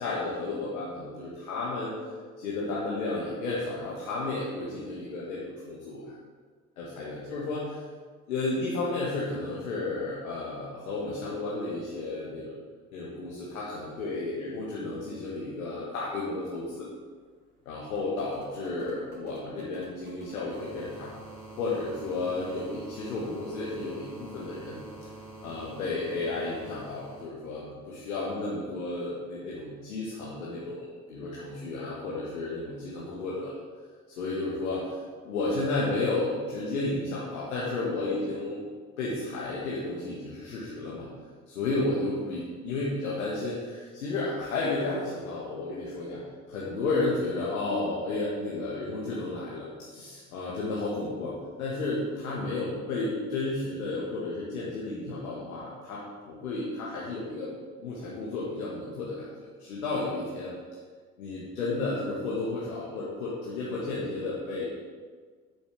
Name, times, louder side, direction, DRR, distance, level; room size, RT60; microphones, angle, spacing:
voice 1, 0.0-1.9 2.4-6.2 6.8-7.8 8.3-12.5 12.9-16.9 17.7-21.1 21.6-24.9 25.4-33.5 34.2-38.6 39.0-41.1 41.5-46.2 46.5-57.5 57.8-60.5 61.2-64.7, left 2 dB, 75° left, -6 dB, 2.0 m, -32 dB
sound 1, 16.4-27.3 28.7-28.8, right 2 dB, 75° right, 2.3 m, -47 dB
12.0 x 8.2 x 5.1 m, 1.6 s
figure-of-eight pair, 55°, 44 cm